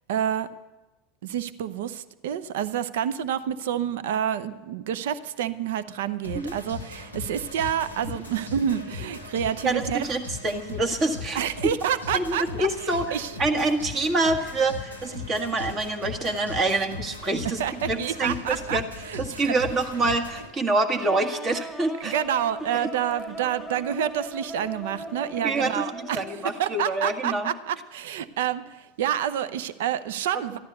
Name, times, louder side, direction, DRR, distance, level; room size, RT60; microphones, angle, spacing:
voice 1, 0.1-0.5 1.2-10.1 11.3-12.7 13.1-13.3 17.6-18.8 19.0-19.5 22.0-30.6, right 9 dB, 60° right, 14 dB, 0.7 m, -28 dB
sound 1, 6.2-20.5, left 4 dB, 90° right, 2.1 m, -38 dB
voice 2, 9.6-11.4 12.1-18.8 19.2-22.1 25.4-27.5, right 2 dB, 30° right, 6 dB, 1.7 m, -26 dB
sound 2, 21.0-26.8, right 1 dB, 5° right, 1.8 m, -39 dB
14.0 x 12.0 x 6.8 m, 1.1 s
figure-of-eight pair, 80°, 0 cm